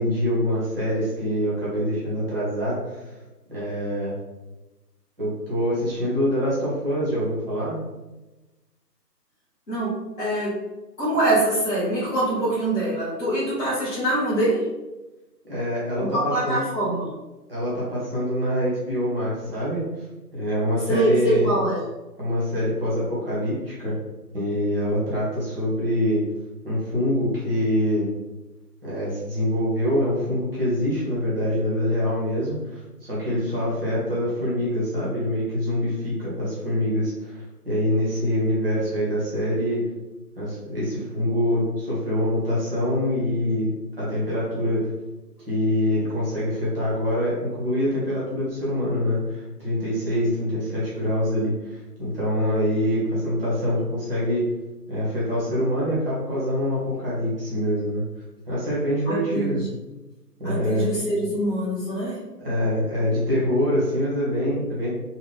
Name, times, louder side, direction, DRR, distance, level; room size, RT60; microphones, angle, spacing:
voice 1, 0.0-3.0 3.5-4.1 5.2-7.8 15.4-16.6 17.5-19.9 20.3-21.5 22.2-23.9 24.3-26.2 26.6-28.1 28.8-39.8 40.4-43.7 44.0-44.9 45.5-54.4 54.9-58.0 58.5-59.6 60.4-60.9 62.4-64.9, equal, 5° right, -8 dB, 0.9 m, -25 dB
voice 2, 9.7-10.7 11.0-14.7 16.1-17.1 20.9-21.8 59.1-59.6 60.4-62.2, right 1 dB, 45° left, -9 dB, 1.2 m, -24 dB
3.5 x 2.4 x 3.5 m, 1.1 s
figure-of-eight pair, 150°, 49 cm